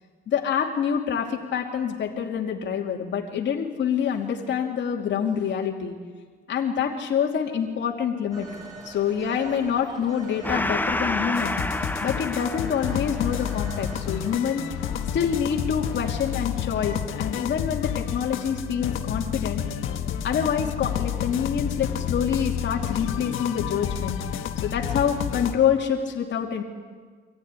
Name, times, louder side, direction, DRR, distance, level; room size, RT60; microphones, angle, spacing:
voice 1, 0.3-5.9 6.5-8.5 8.8-14.6 15.1-19.6 20.2-24.2 24.6-26.6, left 7 dB, 65° left, 0 dB, 2.9 m, -26 dB
Telephone, 8.3-14.3, right 1 dB, 20° right, 7.5 m, -42 dB
Gong, 10.4-17.4, left 2 dB, 10° left, 0.8 m, -31 dB
sound 1, 11.3-25.5, left 9 dB, 85° left, 1.5 m, -30 dB
24.0 x 15.0 x 10.0 m, 1.5 s
cardioid pair, 90°, 20 cm